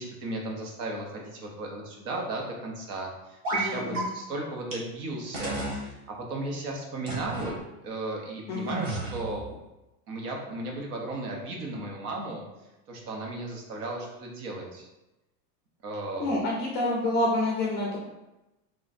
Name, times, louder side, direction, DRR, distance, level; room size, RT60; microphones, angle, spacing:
voice 1, 0.0-5.6 6.1-9.5 10.1-12.4 12.9-14.9 15.8-16.3, right 2 dB, 70° right, 0 dB, 1.2 m, -35 dB
sound 1, 3.4-3.7 3.9-4.0 4.7-4.8 5.3-5.8 7.1-7.5 8.7-9.4, right 2 dB, 30° right, 1.1 m, -31 dB
voice 2, 3.5-4.1 8.5-8.8 16.2-18.0, left 2 dB, 25° left, -3 dB, 0.4 m, -28 dB
3.7 x 2.5 x 4.1 m, 0.97 s
supercardioid pair, 165°, 47 cm